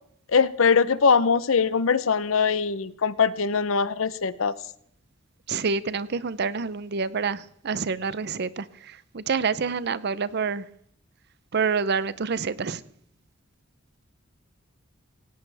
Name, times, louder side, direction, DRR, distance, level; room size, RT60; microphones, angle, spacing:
voice 1, 0.3-4.5, left 5 dB, 75° left, 16 dB, 0.7 m, -22 dB
voice 2, 5.5-10.6 11.5-12.8, right 5 dB, 55° right, 17 dB, 0.6 m, -27 dB
17.5 x 17.5 x 3.4 m, 0.67 s
head